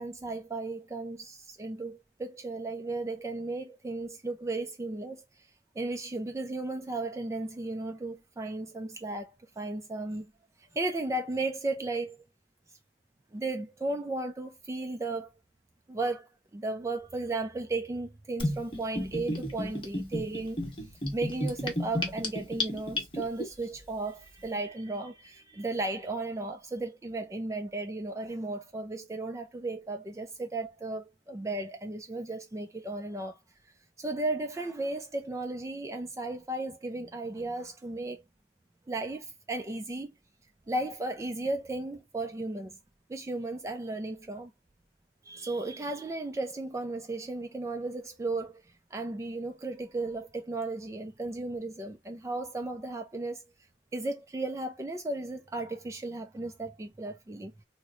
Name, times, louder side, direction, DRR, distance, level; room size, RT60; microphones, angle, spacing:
voice 1, 0.0-5.5 5.8-10.3 10.7-12.2 13.3-15.3 15.9-20.6 21.1-33.4 34.0-38.2 38.9-40.1 40.7-42.8 43.1-44.5 45.2-48.6 48.9-53.4 53.9-57.5, right 2 dB, 15° right, 0.3 m, -35 dB
Gurgling / Bathtub (filling or washing), 18.4-23.4, left 1 dB, 30° left, 0.9 m, -32 dB
3.0 x 2.0 x 3.5 m
head